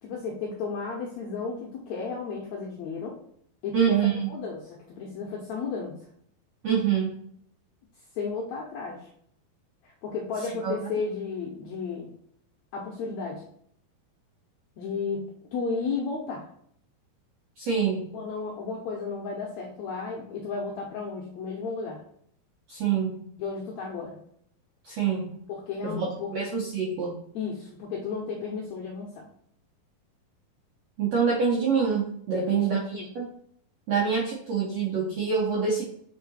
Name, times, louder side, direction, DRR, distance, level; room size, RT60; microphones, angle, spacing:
voice 1, 0.0-3.2 3.6-6.0 8.1-9.1 9.8-12.1 12.7-13.4 14.8-16.5 18.1-22.0 23.4-24.1 25.5-26.3 27.3-29.3 32.3-33.1, left 4 dB, 80° left, -1 dB, 1.6 m, -33 dB
voice 2, 3.7-4.3 6.6-7.1 10.6-10.8 17.6-18.1 22.7-23.2 24.8-25.3 25.8-27.2 31.0-33.3 33.9-35.8, right 6 dB, 75° right, -3 dB, 1.5 m, -26 dB
6.4 x 3.8 x 4.1 m, 0.68 s
omnidirectional pair, 4.2 m